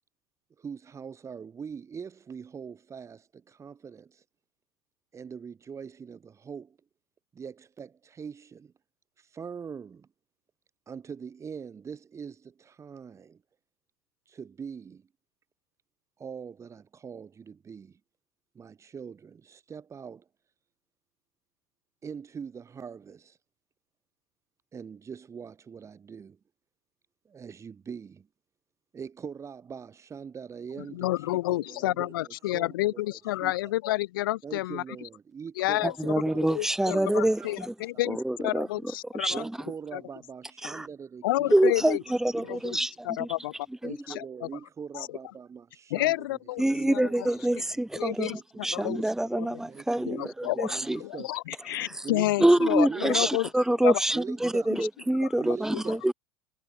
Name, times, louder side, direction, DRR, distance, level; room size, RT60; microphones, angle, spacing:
voice 1, 0.6-4.2 5.1-6.8 7.3-8.7 9.2-10.1 10.9-13.4 14.3-15.1 16.2-18.0 18.5-20.3 22.0-23.4 24.7-26.4 27.3-28.3 28.9-33.7 34.4-38.0 39.3-42.9 43.8-46.4 46.7-48.5 49.7-51.4 52.0-52.6 52.9-53.4 54.1-54.9 55.4-56.0, right 6 dB, 25° right, 3.9 m, -42 dB
voice 2, 30.9-34.8 35.6-35.9 36.5-39.4 41.2-42.0 42.4-42.8 43.2-43.3 43.8-44.5 44.9-45.1 45.9-47.3 47.9-49.0 49.3-49.6 50.1-50.7 51.0-53.5 53.8-54.0 55.2-55.3 55.7-55.8, left 17 dB, 75° left, 0.7 m, -30 dB
voice 3, 36.0-37.7 38.1-38.7 39.1-39.3 40.6-40.9 41.5-42.9 46.6-48.3 48.6-51.0 51.7-52.0 52.4-56.1, right 1 dB, 5° right, 1.0 m, -26 dB
hypercardioid pair, 95°, 11 cm